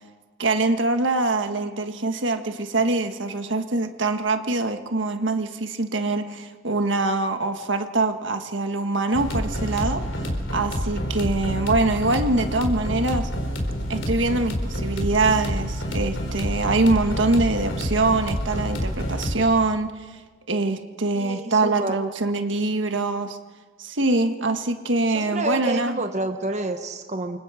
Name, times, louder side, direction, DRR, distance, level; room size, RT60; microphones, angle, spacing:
voice 1, 0.4-10.0 10.5-13.3 13.9-19.9 20.5-23.4 23.8-26.0, right 2 dB, 70° right, 7 dB, 1.6 m, -24 dB
sound 1, 9.1-19.4, equal, 70° left, 4.3 m, -28 dB
voice 2, 21.2-21.9 25.1-27.4, right 2 dB, 35° right, 6 dB, 1.2 m, -29 dB
29.0 x 25.0 x 5.1 m, 1.4 s
head